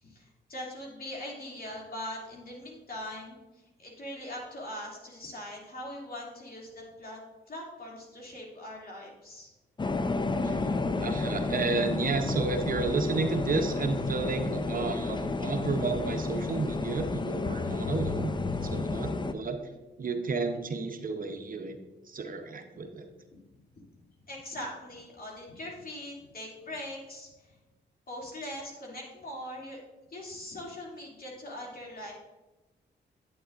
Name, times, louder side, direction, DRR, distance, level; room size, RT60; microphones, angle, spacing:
voice 1, 0.0-3.4 3.8-7.2 7.5-9.5 24.3-27.5 28.1-29.8 30.1-32.1, left 1 dB, 50° left, -2 dB, 2.6 m, -41 dB
sound 1, 9.8-19.3, left 3 dB, 25° left, 0.5 m, -31 dB
voice 2, 11.0-18.3 18.6-19.6 20.0-21.8 22.1-23.1, right 4 dB, 45° right, 6 dB, 0.8 m, -31 dB
8.8 x 7.8 x 2.5 m, 1.1 s
cardioid pair, 55°, 19 cm